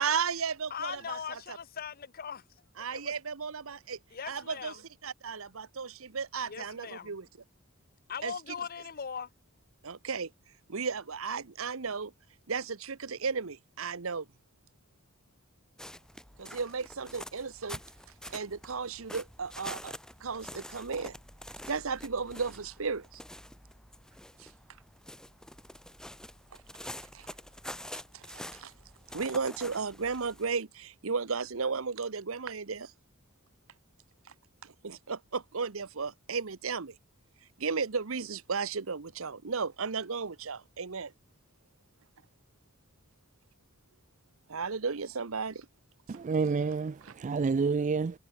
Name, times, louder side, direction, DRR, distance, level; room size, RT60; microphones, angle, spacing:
voice 1, 0.0-1.6 2.8-4.0 4.3-4.7 5.0-7.3 8.2-8.3 9.8-10.3 10.7-12.1 12.5-14.2 16.4-17.8 18.3-19.9 20.2-21.2 21.7-23.2 24.4-24.5 27.1-27.3 28.1-28.7 29.1-32.9 34.8-36.9 37.6-41.1 44.5-45.7, right 5 dB, 70° right, 1.0 m, -34 dB
voice 2, 0.7-2.4 2.9-3.1 4.1-4.8 6.4-7.1 8.1-9.3, left 7 dB, 45° left, 0.8 m, -40 dB
sound 1, 15.8-30.5, left 1 dB, 5° left, 3.1 m, -47 dB
voice 3, 46.1-48.2, right 4 dB, 35° right, 0.3 m, -29 dB
head